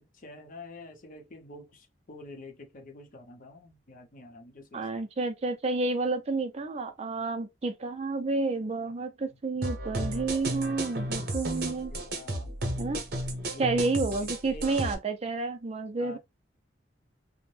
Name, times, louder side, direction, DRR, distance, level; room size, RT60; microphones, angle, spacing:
voice 1, 0.0-4.9 8.8-8.9 9.3-9.6 11.9-12.5 13.5-13.7 14.2-14.8 16.0-16.2, left 2 dB, 50° left, 0.7 m, -48 dB
voice 2, 4.7-11.9 12.8-13.0 13.6-16.2, right 3 dB, 35° right, 0.4 m, -30 dB
sound 1, 9.6-14.9, right 1 dB, 60° right, 0.8 m, -33 dB
2.6 x 2.0 x 3.2 m
head